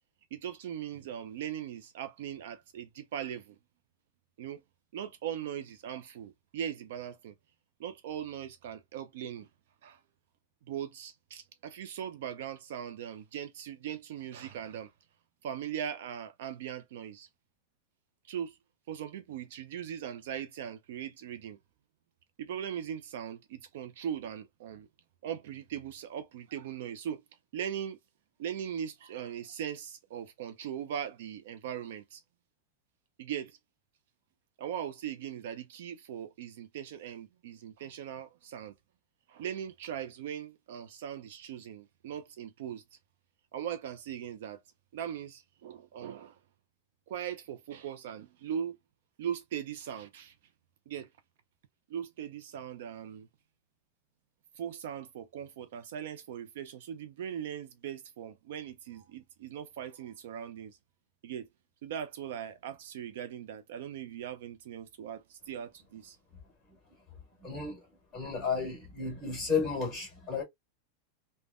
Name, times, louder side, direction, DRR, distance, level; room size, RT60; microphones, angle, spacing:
voice 1, 0.3-3.6 4.4-4.6 4.9-7.3 7.8-9.5 9.8-10.0 10.7-14.9 15.4-17.3 18.3-18.6 18.9-21.6 22.4-24.9 25.2-27.2 27.5-28.0 28.4-32.2 33.2-33.6 34.6-38.7 39.3-42.8 43.5-44.6 44.9-46.4 47.1-48.8 49.2-50.3 50.9-51.1 51.9-53.3 54.6-60.8 61.2-61.5 61.8-66.2, right 9 dB, 60° right, 0.4 m, -39 dB
voice 2, 67.4-67.8 68.1-70.4, left 5 dB, 10° left, 1.6 m, -33 dB
3.4 x 2.1 x 2.3 m
supercardioid pair, 175°, 0 cm